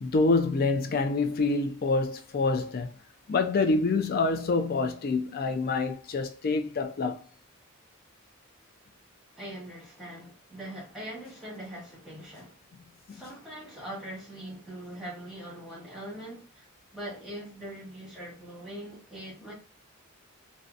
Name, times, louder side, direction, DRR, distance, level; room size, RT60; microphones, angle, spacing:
voice 1, 0.0-3.0 3.3-7.2 13.1-13.2, left 3 dB, 45° left, 0.4 m, -26 dB
voice 2, 9.4-12.6 13.1-19.5, right 1 dB, ahead, 1.0 m, -42 dB
2.7 x 2.1 x 2.4 m
head